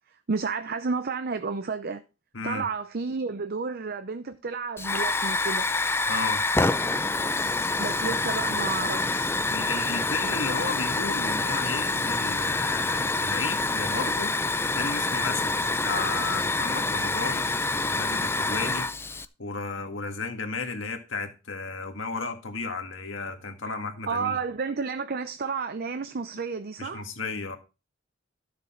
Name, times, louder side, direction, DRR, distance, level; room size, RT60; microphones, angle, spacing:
voice 1, 0.3-2.0 2.4-5.7 7.8-9.4 23.8-27.0, right 5 dB, 50° right, 0.6 m, -31 dB
voice 2, 2.3-2.7 6.1-6.4 9.5-14.3 14.7-18.9 19.4-24.4 26.8-27.6, left 4 dB, 75° left, 1.8 m, -33 dB
Hiss / Fire, 4.8-19.3, left 3 dB, 10° left, 0.4 m, -27 dB
12.5 x 6.8 x 4.3 m
head